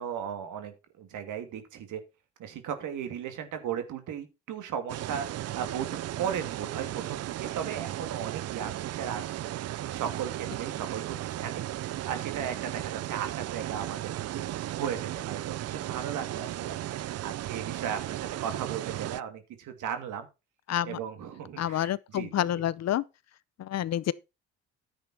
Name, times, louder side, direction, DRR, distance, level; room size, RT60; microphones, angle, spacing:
voice 1, 0.0-2.0 2.4-20.3 20.8-22.5, right 8 dB, 80° right, 2.6 m, -37 dB
Water running through weir, 4.9-19.2, right 14 dB, 55° right, 0.5 m, -35 dB
voice 2, 20.7-21.0 21.6-23.0 23.6-24.1, left 11 dB, 60° left, 0.7 m, -28 dB
10.5 x 7.9 x 4.4 m
cardioid pair, 90°, 30 cm